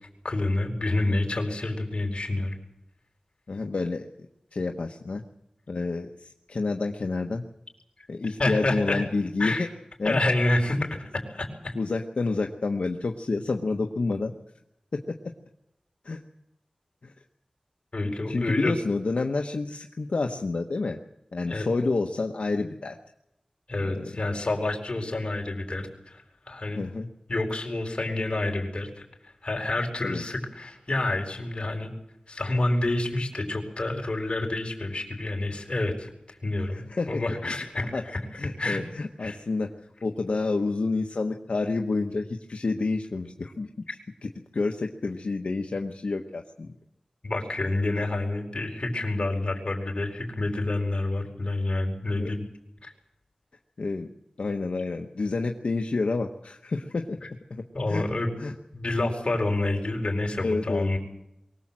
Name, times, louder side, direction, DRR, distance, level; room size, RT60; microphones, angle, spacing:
voice 1, 0.2-2.6 8.4-9.0 9.4-9.7 10.0-11.7 17.9-18.7 21.5-21.7 23.7-26.8 27.3-31.9 32.3-36.8 37.1-38.2 38.6-38.8 39.2-39.4 47.2-52.4 52.8-52.9 57.7-58.3 58.7-61.0, left 2 dB, 55° left, 2 dB, 4.9 m, -28 dB
voice 2, 3.5-4.1 4.5-5.2 5.7-7.4 8.1-9.7 10.0-10.2 11.7-14.3 14.9-15.2 16.0-16.2 17.0-17.1 18.3-21.0 21.3-22.9 23.8-24.1 26.7-27.1 30.0-30.2 36.7-38.0 38.4-39.7 40.0-43.7 44.2-46.7 52.2-52.3 53.8-54.1 54.4-57.2 57.5-58.0 58.4-58.5 60.4-60.9, left 3 dB, 85° left, 3 dB, 1.2 m, -29 dB
23.5 x 18.5 x 7.6 m, 0.84 s
wide cardioid pair, 65°, 2 cm